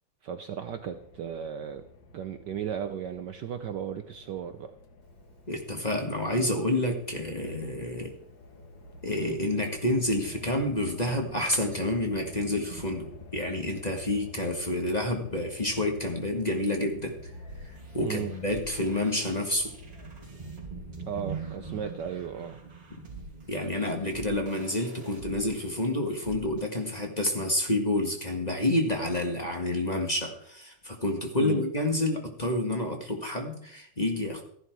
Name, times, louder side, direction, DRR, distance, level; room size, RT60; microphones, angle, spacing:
voice 1, 0.2-1.8 2.1-4.7 18.0-18.3 21.1-22.6 31.4-31.6, right 8 dB, 65° right, 8 dB, 1.2 m, -35 dB
sound 1, 0.7-20.5, left 3 dB, 65° left, 2.1 m, -49 dB
Thunder, 5.0-24.4, right 5 dB, 25° right, 1.1 m, -48 dB
voice 2, 5.5-8.1 9.0-17.3 17.6-19.7 22.9-23.0 23.5-34.4, left 1 dB, 20° left, 2 dB, 1.6 m, -29 dB
sound 2, 17.5-26.8, right 2 dB, 40° right, 3.4 m, -48 dB
14.0 x 11.5 x 4.6 m, 0.67 s
omnidirectional pair, 2.4 m